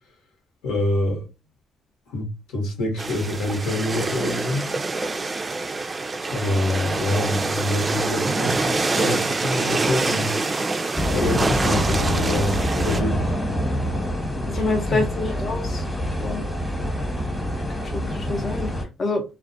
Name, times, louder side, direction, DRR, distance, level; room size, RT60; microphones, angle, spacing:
voice 1, 0.6-1.2 2.1-4.7 6.3-10.6 11.1-13.3 14.4-14.6 14.9-15.1, left 1 dB, 85° left, 0.9 m, -26 dB
sound 1, 3.0-13.0, right 3 dB, 30° right, 0.3 m, -25 dB
sound 2, 10.9-18.8, equal, 15° left, 0.9 m, -26 dB
voice 2, 14.5-15.8 16.2-16.4 17.7-19.2, left 3 dB, 45° left, 0.6 m, -27 dB
2.4 x 2.1 x 2.6 m
supercardioid pair, 65°, 0 cm